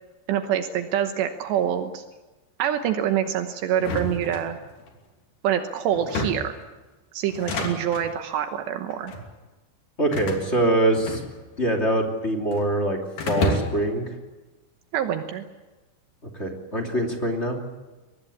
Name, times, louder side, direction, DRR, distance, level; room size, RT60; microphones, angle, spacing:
voice 1, 0.3-2.0 2.6-4.6 5.4-6.5 7.1-9.1 14.9-15.4, right 10 dB, 75° right, 7 dB, 3.2 m, -25 dB
sound 1, 3.8-4.9 5.9-6.6 7.3-8.1 8.9-9.3 10.1-11.6 11.9-12.7 13.2-13.9, left 2 dB, 50° left, 4.2 m, -30 dB
voice 2, 10.0-11.2 11.6-13.0 13.2-14.1 16.3-17.6, right 1 dB, 20° left, 3 dB, 2.2 m, -24 dB
23.0 x 21.0 x 8.5 m, 1.2 s
omnidirectional pair, 5.1 m